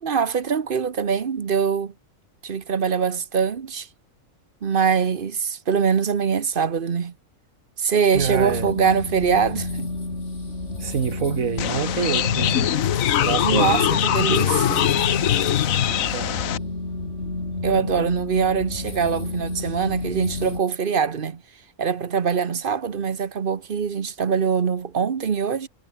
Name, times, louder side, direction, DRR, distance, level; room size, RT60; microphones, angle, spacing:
voice 1, 0.0-1.9 2.4-3.9 4.6-7.1 7.8-9.9 13.4-14.9 17.6-21.4 21.8-25.7, right 6 dB, 45° right, 1.1 m, -23 dB
sound 1, 8.1-20.6, left 2 dB, 55° left, 4.6 m, -31 dB
voice 2, 8.1-8.7 10.8-12.8 13.2-13.9 15.8-16.4, right 7 dB, 80° right, 1.9 m, -27 dB
sound 2, 11.6-16.6, left 11 dB, 80° left, 1.2 m, -22 dB
omnidirectional pair, 1.4 m